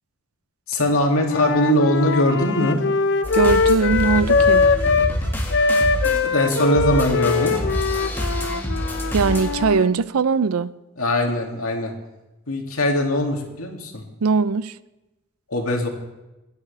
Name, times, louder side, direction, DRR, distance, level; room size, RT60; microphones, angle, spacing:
voice 1, 0.7-2.8 6.2-7.6 11.0-11.9 12.5-14.0 15.5-15.9, left 1 dB, 80° left, 2.3 m, -21 dB
Wind instrument woodwind instrument, 1.2-5.1 5.5-9.9, left 4 dB, 55° left, 0.6 m, -21 dB
sound 1, 3.2-9.6, equal, 10° left, 2.0 m, -27 dB
voice 2, 3.3-4.7 9.1-10.7 14.2-14.7, right 4 dB, 85° right, 0.5 m, -20 dB
26.0 x 9.6 x 3.3 m
head